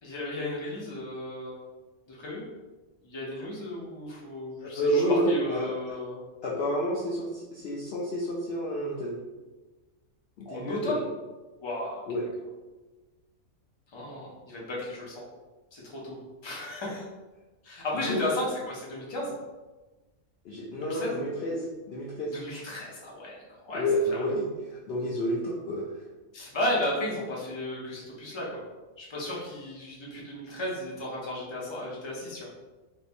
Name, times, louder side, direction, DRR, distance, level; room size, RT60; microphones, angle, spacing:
voice 1, 0.0-1.7 2.1-2.4 3.0-6.2 10.4-11.0 11.6-12.0 13.9-15.2 15.7-16.2 16.4-17.0 17.6-19.3 20.8-21.2 22.3-23.4 23.6-23.8 24.1-24.3 26.3-28.6 29.0-32.5, left 1 dB, 25° left, -4 dB, 0.7 m, -34 dB
voice 2, 4.6-5.7 6.4-9.2 10.4-11.0 12.1-12.2 17.9-18.3 20.4-22.3 23.7-26.0, equal, 65° left, -3 dB, 0.7 m, -29 dB
3.6 x 2.7 x 2.6 m, 1.2 s
omnidirectional pair, 1.4 m